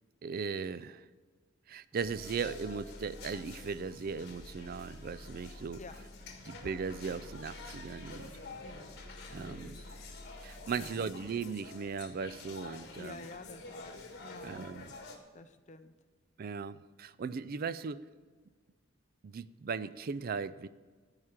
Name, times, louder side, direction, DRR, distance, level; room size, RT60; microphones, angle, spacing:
voice 1, 0.2-1.1 1.7-5.8 6.5-8.4 9.3-9.8 10.4-13.2 14.4-14.9 16.4-18.0 19.2-20.7, right 5 dB, 50° right, 16 dB, 0.4 m, -38 dB
sound 1, 1.9-15.2, left 3 dB, 60° left, 1.5 m, -49 dB
sound 2, 1.9-11.1, equal, ahead, 3.8 m, -52 dB
voice 2, 8.6-9.0 9.4-9.8 10.7-11.0 12.9-14.6 15.3-15.9, left 3 dB, 40° left, 9 dB, 0.7 m, -50 dB
14.0 x 4.9 x 7.3 m, 1.5 s
head